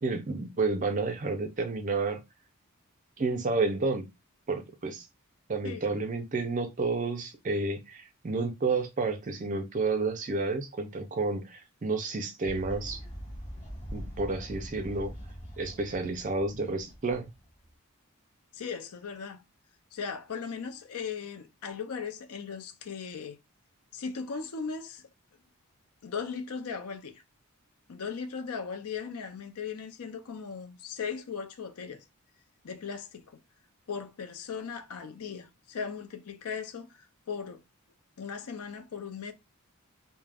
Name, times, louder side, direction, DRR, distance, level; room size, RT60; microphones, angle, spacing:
voice 1, 0.0-2.2 3.2-4.1 4.5-5.1 5.5-13.0 13.9-15.1 15.6-17.3, right 3 dB, 35° right, 0.4 m, -30 dB
Fowl, 12.4-17.7, equal, 30° left, 1.1 m, -43 dB
voice 2, 18.5-19.4 19.9-23.4 23.9-25.1 26.0-27.2 27.9-32.0 32.6-33.4 33.9-37.6 38.2-39.3, left 6 dB, 80° left, 0.5 m, -38 dB
2.3 x 2.1 x 3.3 m
head